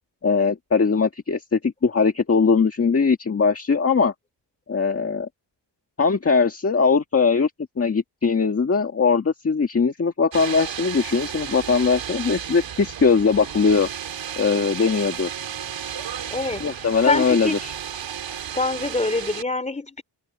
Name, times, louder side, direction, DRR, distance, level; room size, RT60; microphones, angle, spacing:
voice 1, 0.2-4.1 4.7-5.3 6.0-7.5 7.8-13.9 14.4-15.3 16.6-17.7, left 5 dB, 30° left, 1.8 m, -20 dB
sound 1, 10.3-19.4, right 9 dB, 90° right, 2.7 m, -33 dB
voice 2, 16.3-16.7 17.1-17.6 18.6-20.0, left 3 dB, 15° left, 3.1 m, -25 dB
wide cardioid pair, 160°, 43 cm